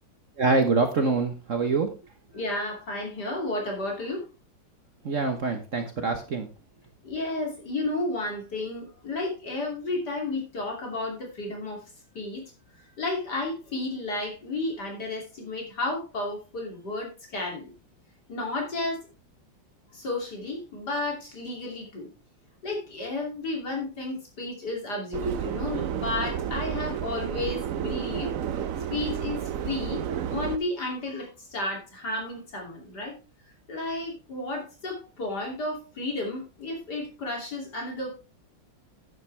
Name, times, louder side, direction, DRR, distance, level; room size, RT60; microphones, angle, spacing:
voice 1, 0.4-1.9 5.0-6.5, right 3 dB, 50° right, 6 dB, 1.3 m, -25 dB
voice 2, 2.3-4.2 7.0-11.8 12.1-12.4 13.0-17.7 18.3-19.0 19.9-22.1 22.6-28.3 28.9-30.0 30.3-33.2 33.7-38.1, left 2 dB, 60° left, 0 dB, 3.4 m, -32 dB
Subway metro underground, 25.1-30.6, right 9 dB, 65° right, 0.9 m, -31 dB
11.0 x 8.8 x 3.3 m, 0.30 s
omnidirectional pair, 2.0 m